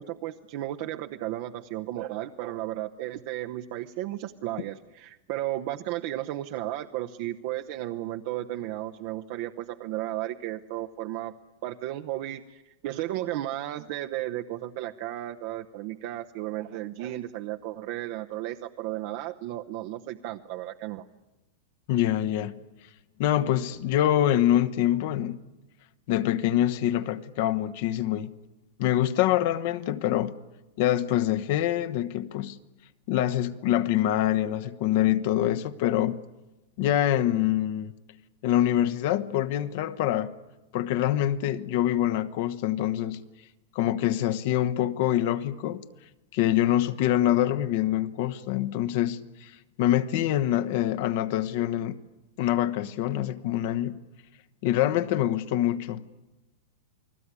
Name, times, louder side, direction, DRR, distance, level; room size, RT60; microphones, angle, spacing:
voice 1, 0.0-11.3 11.6-21.0, right 14 dB, 40° right, 0.9 m, -34 dB
voice 2, 21.9-22.5 23.2-25.4 26.1-28.3 28.8-30.3 30.8-32.6 33.1-36.2 36.8-37.9 38.4-40.4 40.7-43.2 43.7-45.8 46.3-49.5 49.8-51.9 52.4-54.0 54.6-56.1, left 12 dB, 45° left, 1.1 m, -25 dB
29.0 x 20.5 x 9.8 m
supercardioid pair, 175°, 0 cm